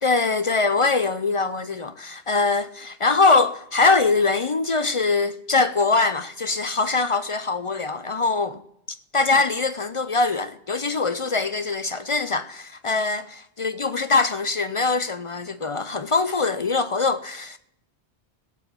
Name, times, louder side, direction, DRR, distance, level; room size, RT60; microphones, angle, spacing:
voice 1, 0.0-8.6 9.1-17.6, left 3 dB, 45° left, 0.4 m, -22 dB
16.5 x 7.9 x 6.7 m
omnidirectional pair, 1.1 m